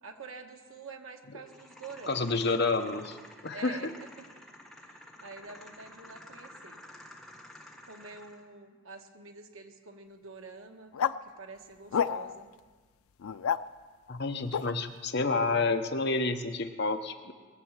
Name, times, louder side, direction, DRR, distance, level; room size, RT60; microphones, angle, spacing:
voice 1, 0.0-2.3 3.5-4.3 4.8-6.8 7.9-10.9 11.2-12.5, right 4 dB, 70° right, 4 dB, 1.3 m, -47 dB
sound 1, 1.5-8.5, left 1 dB, ahead, 1.3 m, -51 dB
voice 2, 2.1-3.2 3.4-3.8 14.1-17.3, left 3 dB, 50° left, 6 dB, 0.9 m, -29 dB
sound 2, 10.9-11.2 11.9-12.4 13.2-13.6 14.5-14.7, left 8 dB, 80° left, 0.4 m, -29 dB
21.0 x 7.9 x 7.3 m, 1.4 s
head